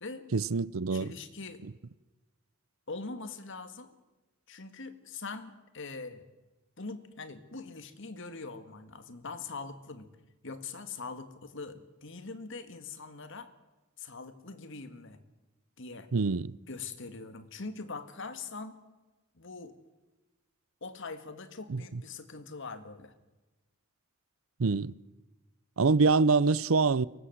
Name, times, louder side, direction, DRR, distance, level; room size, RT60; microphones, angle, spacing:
voice 1, 0.3-1.1 16.1-16.5 21.7-21.8 24.6-24.9 25.8-27.1, right 4 dB, 75° right, 0.6 m, -25 dB
voice 2, 0.9-1.6 2.9-4.0 4.5-6.3 6.8-10.1 10.4-13.5 14.0-15.2 15.8-16.1 16.7-18.8 19.3-19.7 20.8-23.1, left 4 dB, 65° left, 2.0 m, -42 dB
23.0 x 19.5 x 8.0 m
head